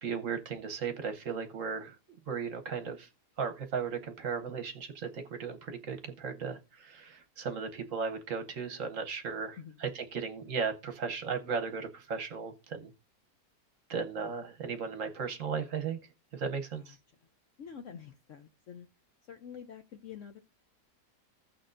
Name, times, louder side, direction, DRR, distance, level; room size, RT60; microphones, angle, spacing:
voice 1, 0.0-2.0 2.3-3.1 3.4-12.9 13.9-16.0 16.3-17.0, right 5 dB, 55° right, 1.1 m, -36 dB
voice 2, 17.6-18.9 19.3-20.4, left 7 dB, 65° left, 0.8 m, -47 dB
15.5 x 6.4 x 2.5 m
omnidirectional pair, 1.8 m